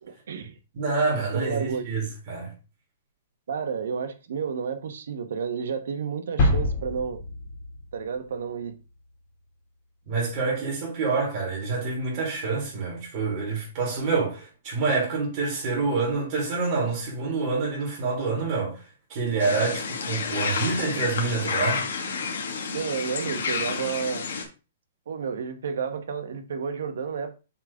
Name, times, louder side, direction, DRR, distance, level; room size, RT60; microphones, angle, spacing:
voice 1, 0.0-0.5 1.3-1.8 3.5-7.2 7.9-8.8 22.7-24.3 25.1-27.4, right 6 dB, 70° right, 1.1 m, -31 dB
voice 2, 0.7-2.5 10.0-18.8 19.1-21.8, right 4 dB, 30° right, 3.3 m, -27 dB
sound 1, 6.4-8.4, left 1 dB, 25° left, 1.9 m, -26 dB
sound 2, 19.4-24.4, left 5 dB, 80° left, 1.6 m, -30 dB
7.3 x 3.8 x 3.5 m
hypercardioid pair, 175°, 0 cm